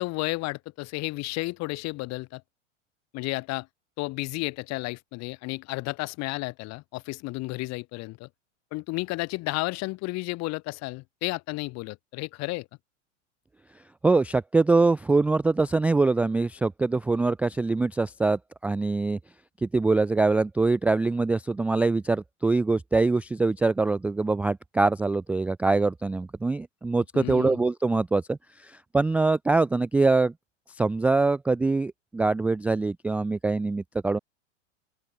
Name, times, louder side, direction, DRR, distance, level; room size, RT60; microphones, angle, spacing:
voice 1, 0.0-2.4 3.1-3.7 4.0-8.3 8.7-12.7 27.1-27.6, left 22 dB, 45° left, 1.9 m, -32 dB
voice 2, 14.0-19.2 19.6-28.4 28.6-30.3 30.8-34.2, right 3 dB, 5° right, 0.3 m, -24 dB
open air
hypercardioid pair, 95°, 37 cm